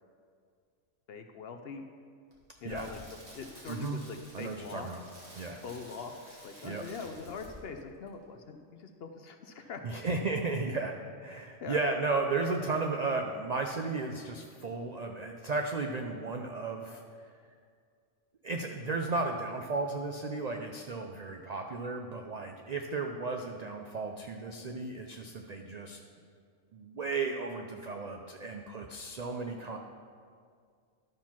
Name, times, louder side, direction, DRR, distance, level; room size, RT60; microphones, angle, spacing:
voice 1, 1.1-1.8 2.6-3.0 3.3-4.9 5.6-10.0 11.6-11.8, left 5 dB, 60° left, 5 dB, 0.7 m, -43 dB
Crackle, 2.3-7.8 8.1-8.2, equal, 15° right, 2.0 m, -52 dB
voice 2, 3.7-4.0 4.3-5.0 5.4-5.6 6.6-6.8 9.6-17.0 18.4-26.0 26.7-29.8, right 3 dB, 70° right, 3 dB, 0.4 m, -34 dB
12.0 x 4.5 x 5.8 m, 2.2 s
omnidirectional pair, 1.4 m